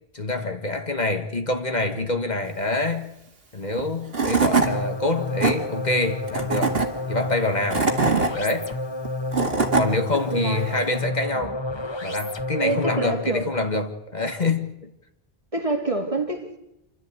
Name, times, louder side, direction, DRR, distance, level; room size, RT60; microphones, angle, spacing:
voice 1, 0.1-3.1 3.5-6.8 7.1-7.9 8.3-8.7 9.7-11.6 12.0-14.9, left 2 dB, 45° left, 1.6 m, -26 dB
Tools / Wood, 3.8-3.9 4.1-4.7 5.2-5.5 6.3-6.9 7.5-8.3 9.1-9.9, right 4 dB, 75° right, 2.4 m, -21 dB
sound 1, 4.5-13.3, left 2 dB, 25° left, 1.0 m, -30 dB
voice 2, 10.3-10.8 12.6-13.5 15.5-16.6, right 2 dB, 35° right, 2.6 m, -26 dB
28.0 x 13.0 x 8.3 m
omnidirectional pair, 1.0 m